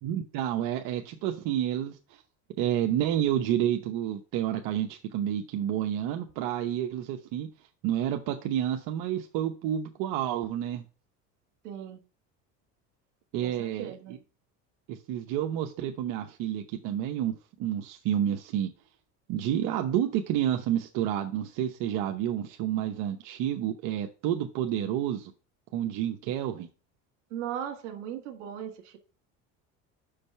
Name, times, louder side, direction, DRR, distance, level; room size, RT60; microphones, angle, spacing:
voice 1, 0.0-2.0 2.6-7.5 7.8-10.8 13.3-14.0 14.9-18.7 19.3-25.3 25.7-26.7, right 11 dB, 70° right, 0.8 m, -29 dB
voice 2, 11.6-12.0 13.4-14.2 27.3-29.0, right 9 dB, 90° right, 1.7 m, -38 dB
5.4 x 5.1 x 5.6 m
supercardioid pair, 100°, 34 cm